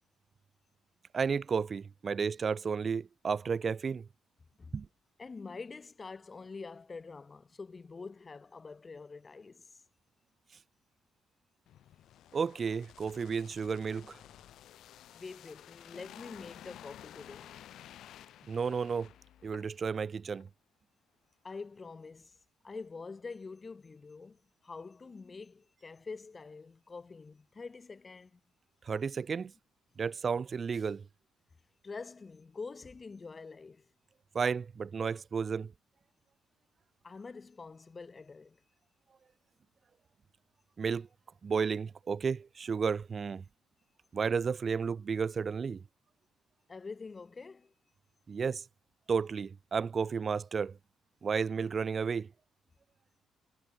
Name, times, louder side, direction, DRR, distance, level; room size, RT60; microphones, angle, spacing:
voice 1, 1.1-4.1 4.7-4.9 12.3-14.2 18.5-19.1 19.4-20.5 28.8-29.5 30.0-31.0 34.3-35.7 40.8-41.1 41.4-43.4 44.1-45.8 48.3-48.6 49.1-50.8 51.2-52.3, right 6 dB, 40° right, 0.5 m, -32 dB
voice 2, 5.2-9.7 15.1-17.6 21.4-22.4 22.6-28.4 31.8-33.9 37.0-38.6 46.7-47.7, left 4 dB, 30° left, 2.9 m, -46 dB
sound 1, 11.7-20.0 20.3-20.5, left 12 dB, 75° left, 2.0 m, -53 dB
cardioid pair, 90°, 0 cm